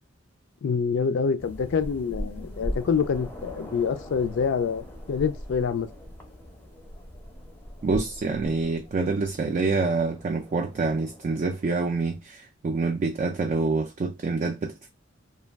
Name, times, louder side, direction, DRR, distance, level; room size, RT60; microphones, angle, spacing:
voice 1, 0.6-5.9, left 6 dB, 65° left, 0.4 m, -26 dB
sound 1, 1.4-12.1, equal, 10° left, 0.5 m, -40 dB
voice 2, 7.8-14.9, right 3 dB, 40° right, 0.3 m, -26 dB
2.3 x 2.2 x 3.3 m
head